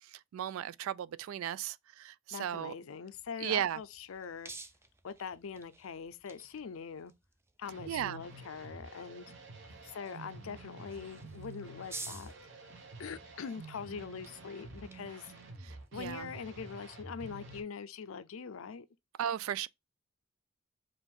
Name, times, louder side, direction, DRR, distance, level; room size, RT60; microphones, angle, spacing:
voice 1, 0.3-2.7 3.4-3.8 7.9-8.2 15.9-16.3 19.2-19.7, right 10 dB, 80° right, 0.3 m, -35 dB
voice 2, 2.3-4.5 5.0-7.1 7.6-9.3 9.8-12.3 13.0-15.3 15.9-18.9, left 6 dB, 85° left, 0.5 m, -43 dB
sound 1, 3.1-17.6, right 3 dB, 10° right, 0.4 m, -54 dB
sound 2, 7.6-17.6, right 2 dB, 65° right, 1.0 m, -49 dB
5.0 x 2.5 x 3.5 m
head